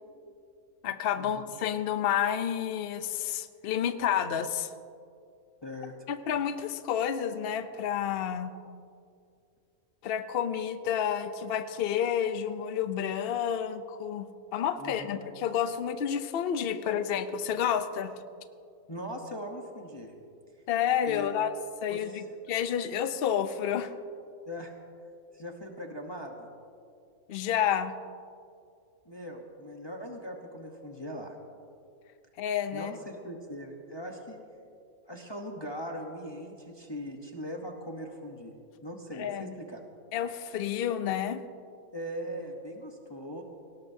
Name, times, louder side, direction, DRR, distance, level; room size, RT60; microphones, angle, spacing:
voice 1, 0.8-4.7 6.1-8.5 10.0-14.2 14.5-18.1 20.7-21.5 21.8-23.9 27.3-27.9 32.4-32.9 39.1-39.5 40.1-41.4, left 9 dB, 55° left, 10 dB, 0.7 m, -30 dB
voice 2, 5.6-6.2 14.8-15.2 18.9-20.1 21.1-21.4 21.9-22.2 24.5-24.7 25.3-26.5 29.1-31.3 32.7-34.4 35.1-38.5 38.8-39.8 41.9-43.4, equal, 20° left, 1 dB, 0.9 m, -40 dB
19.0 x 18.0 x 2.7 m, 2.4 s
omnidirectional pair, 1.6 m